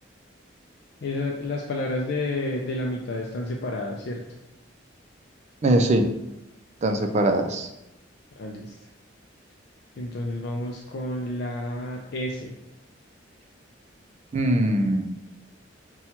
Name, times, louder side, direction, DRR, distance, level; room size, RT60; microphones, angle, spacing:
voice 1, 1.0-4.2 8.4-8.8 10.0-12.6, left 1 dB, 55° left, 0 dB, 0.4 m, -30 dB
voice 2, 5.6-6.1 6.8-7.7 14.3-15.1, right 1 dB, 35° right, 6 dB, 0.4 m, -21 dB
5.7 x 2.3 x 2.8 m, 0.88 s
head